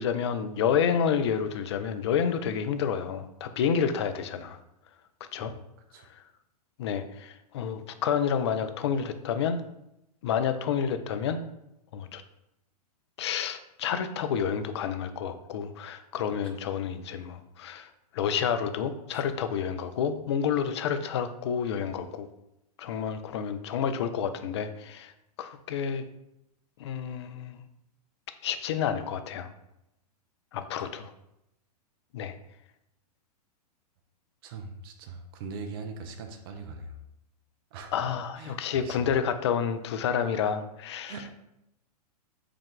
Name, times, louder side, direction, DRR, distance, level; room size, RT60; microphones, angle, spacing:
voice 1, 0.0-4.6 5.3-5.5 6.8-9.6 10.2-11.4 11.9-12.2 13.2-17.9 18.1-22.3 22.8-25.1 25.4-26.1 26.8-27.6 28.4-29.5 30.5-31.1 32.1-32.3 37.9-41.1, left 7 dB, 45° left, 9 dB, 0.4 m, -29 dB
voice 2, 34.4-37.0 37.7-38.1 38.3-39.1 41.1-41.4, right 4 dB, 35° right, 5 dB, 0.5 m, -41 dB
4.7 x 2.3 x 3.6 m, 0.85 s
figure-of-eight pair, 105°, 20 cm